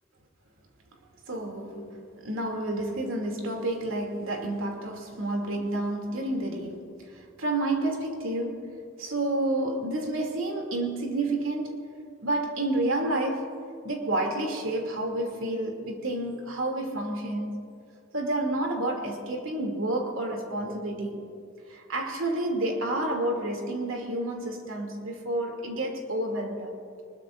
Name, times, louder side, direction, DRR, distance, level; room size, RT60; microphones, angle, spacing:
voice 1, 1.3-11.9 12.2-13.5 13.8-17.8 18.1-21.3 21.7-26.7, right 1 dB, 80° right, 2.7 m, -30 dB
24.5 x 21.0 x 2.6 m
head